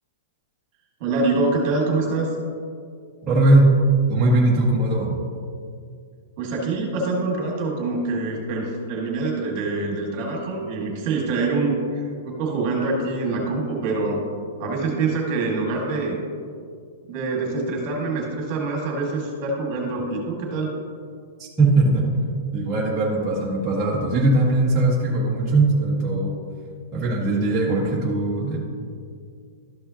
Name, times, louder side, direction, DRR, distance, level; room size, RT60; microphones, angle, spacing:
voice 1, 1.0-2.3 6.4-14.2 14.6-16.2 17.0-20.7, right 3 dB, 40° right, -1 dB, 1.9 m, -25 dB
voice 2, 3.3-3.7 4.1-5.1 21.4-22.1 22.5-26.4 26.9-28.6, right 2 dB, 15° right, -8 dB, 1.5 m, -20 dB
12.5 x 5.4 x 2.9 m, 2.2 s
hypercardioid pair, 155°, 0 cm